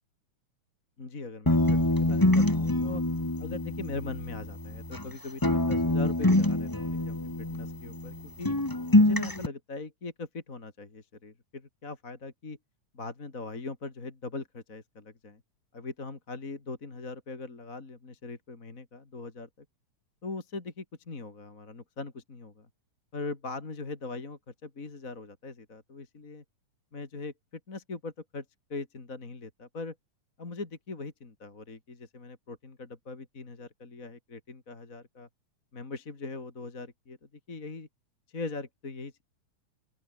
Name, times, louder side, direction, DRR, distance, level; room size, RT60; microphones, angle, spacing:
voice 1, 1.0-3.0 3.4-8.5 9.0-12.6 12.9-15.4 15.7-19.6 20.2-22.7 23.1-26.4 26.9-27.3 27.7-28.4 28.7-29.9 30.4-35.3 35.7-37.2 37.5-37.9 38.3-39.2, left 3 dB, 25° left, 3.1 m, -41 dB
sound 1, 1.5-5.1 5.4-8.2 8.4-9.5, left 1 dB, 10° left, 1.4 m, -25 dB
open air
omnidirectional pair, 3.4 m